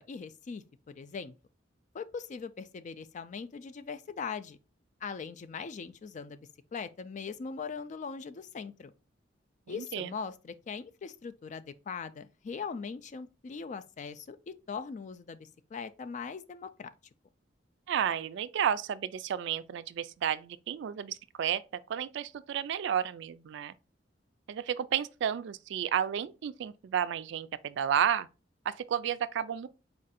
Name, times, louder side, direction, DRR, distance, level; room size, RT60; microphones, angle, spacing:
voice 1, 0.0-1.3 1.9-4.6 5.0-8.9 9.7-16.9, left 5 dB, 40° left, 0.3 m, -40 dB
voice 2, 9.7-10.1 17.9-23.7 24.5-28.3 28.7-29.7, right 9 dB, 70° right, 0.3 m, -32 dB
4.4 x 2.5 x 4.1 m
head